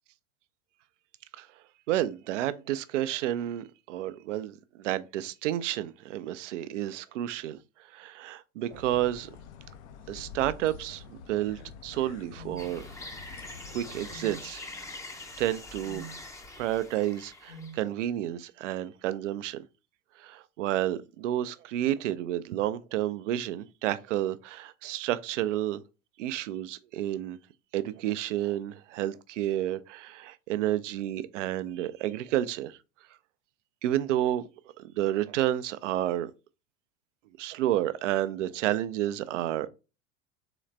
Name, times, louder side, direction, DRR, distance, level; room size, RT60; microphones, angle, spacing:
voice 1, 1.9-7.6 7.9-9.3 10.1-12.8 13.7-14.9 15.4-16.0 16.6-19.6 20.2-25.8 26.2-27.4 27.7-32.8 33.8-34.4 34.8-36.3 37.4-39.7, right 13 dB, 60° right, 0.5 m, -30 dB
sound 1, 8.7-14.2, left 7 dB, 55° left, 0.6 m, -47 dB
sound 2, 12.4-12.6 14.1-14.4 15.8-16.1 17.5-17.8, right 3 dB, 80° left, 1.8 m, -43 dB
sound 3, 12.6-17.9, left 2 dB, 10° left, 0.6 m, -44 dB
3.9 x 3.1 x 3.2 m
figure-of-eight pair, 85°, 41 cm